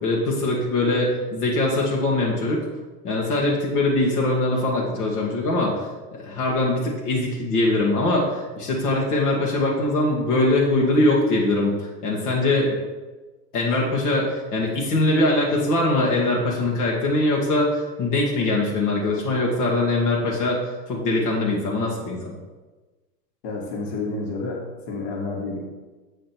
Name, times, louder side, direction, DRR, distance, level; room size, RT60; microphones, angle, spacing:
voice 1, 0.0-2.6 3.0-5.9 6.2-12.8 13.5-20.6 20.9-22.3, left 2 dB, 70° left, -3 dB, 2.0 m, -22 dB
voice 2, 23.4-25.6, left 3 dB, 55° left, -1 dB, 2.1 m, -30 dB
7.6 x 5.1 x 4.6 m, 1.2 s
hypercardioid pair, 120°, 48 cm